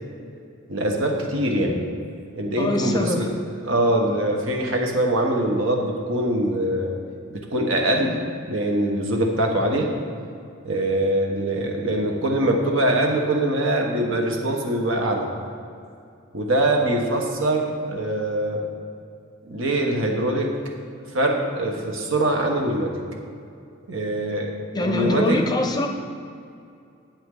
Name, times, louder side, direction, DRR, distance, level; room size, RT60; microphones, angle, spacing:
voice 1, 0.7-1.8 2.3-6.9 7.3-8.2 8.5-9.9 10.6-15.3 16.3-18.6 19.4-20.5 21.1-23.0 23.9-25.4, right 1 dB, 70° right, 1 dB, 1.4 m, -23 dB
voice 2, 2.6-3.4 24.7-25.9, left 1 dB, 20° left, 4 dB, 0.6 m, -24 dB
11.0 x 8.6 x 3.9 m, 2.4 s
head